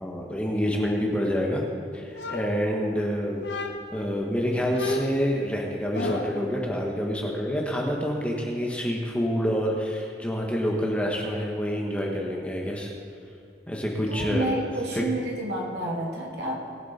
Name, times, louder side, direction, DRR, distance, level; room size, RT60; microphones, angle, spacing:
voice 1, 0.0-1.6 1.9-3.4 3.9-12.9 13.7-14.5 14.9-15.0, equal, 5° left, -1 dB, 1.3 m, -27 dB
sound 1, 2.2-3.0 3.4-4.1 4.7-6.5, left 2 dB, 80° left, 1.1 m, -32 dB
voice 2, 14.1-16.6, right 1 dB, 75° right, -2 dB, 2.6 m, -30 dB
20.0 x 7.5 x 4.3 m, 2.4 s
head